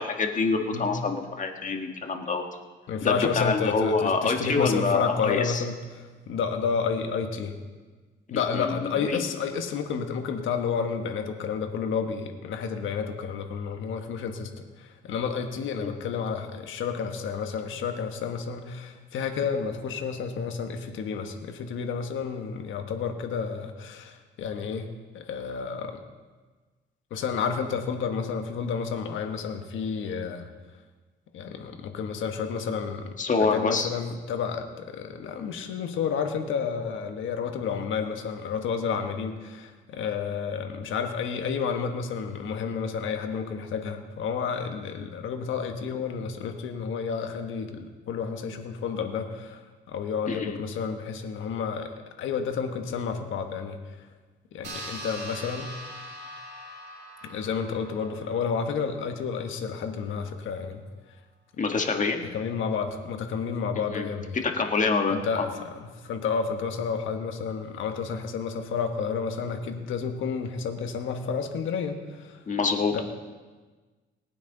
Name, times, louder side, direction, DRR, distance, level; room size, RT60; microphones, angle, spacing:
voice 1, 0.0-2.4 3.0-5.6 8.5-9.2 15.8-15.9 33.2-33.9 50.3-50.6 61.6-62.3 63.9-64.1 64.3-65.4 72.5-73.0, left 4 dB, 40° left, 4 dB, 1.6 m, -26 dB
voice 2, 2.9-7.5 8.3-24.9 25.1-26.0 27.1-30.5 31.3-33.1 33.4-49.6 49.9-54.1 54.5-55.7 57.2-60.8 62.2-64.4 65.1-72.4 72.9-73.0, left 6 dB, 75° left, 5 dB, 1.4 m, -31 dB
sound 1, 54.6-59.5, right 1 dB, 60° right, 3.7 m, -42 dB
19.0 x 9.3 x 4.0 m, 1.3 s
cardioid pair, 90°, 20 cm